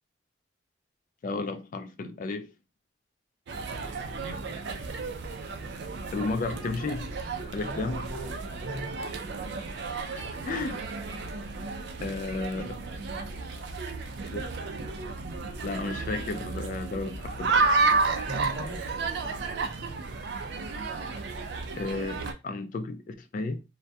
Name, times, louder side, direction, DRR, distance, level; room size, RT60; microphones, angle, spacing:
voice 1, 1.2-2.5 6.1-7.0 7.5-8.1 10.1-10.9 12.0-12.9 14.3-14.5 15.6-17.7 21.8-23.6, left 3 dB, 45° left, 0.3 m, -33 dB
sound 1, 3.5-22.3, right 4 dB, 65° right, 0.4 m, -32 dB
voice 2, 7.6-9.0 18.1-18.9, equal, 80° right, 0.8 m, -39 dB
2.2 x 2.2 x 2.6 m
head